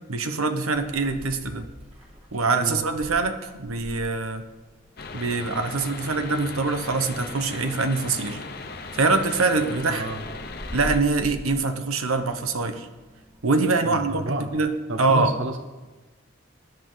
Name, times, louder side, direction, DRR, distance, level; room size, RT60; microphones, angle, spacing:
voice 1, 0.1-1.7 2.3-4.4 5.1-8.4 9.0-10.1 10.7-12.9 13.4-15.4, right 3 dB, 90° right, 8 dB, 1.1 m, -24 dB
Meow, 0.6-14.6, equal, 30° right, 3.2 m, -44 dB
sound 1, 5.0-11.0, left 3 dB, 45° left, 0.9 m, -38 dB
voice 2, 9.8-10.2 13.8-14.5 14.9-15.6, right 2 dB, 60° right, 7 dB, 0.8 m, -30 dB
20.0 x 10.0 x 4.0 m, 1.2 s
head